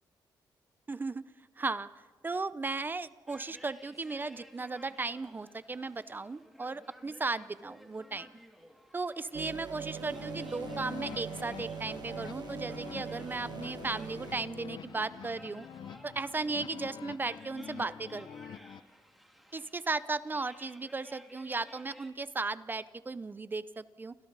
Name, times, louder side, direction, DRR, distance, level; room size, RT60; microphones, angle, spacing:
voice 1, 0.9-1.2 1.6-1.9 2.2-8.3 8.9-15.7 16.0-18.3 19.5-24.2, right 3 dB, 25° right, 16 dB, 0.6 m, -36 dB
sound 1, 3.3-22.1, equal, ahead, 2.3 m, -56 dB
sound 2, 9.3-14.4, right 7 dB, 60° right, 1.3 m, -42 dB
sound 3, 10.0-18.8, left 7 dB, 60° left, 0.8 m, -46 dB
29.0 x 25.0 x 4.0 m, 1.4 s
cardioid pair, 115°, 8 cm